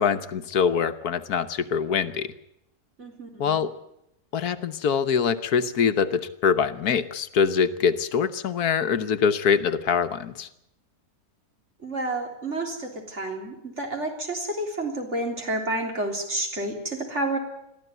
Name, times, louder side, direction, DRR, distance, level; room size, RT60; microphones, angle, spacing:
voice 1, 0.0-2.3 3.4-3.7 4.3-10.5, left 6 dB, 75° left, 10 dB, 1.5 m, -24 dB
voice 2, 3.0-3.6 11.8-17.4, right 2 dB, 45° right, 2 dB, 3.9 m, -30 dB
22.0 x 14.5 x 9.3 m, 0.81 s
omnidirectional pair, 1.6 m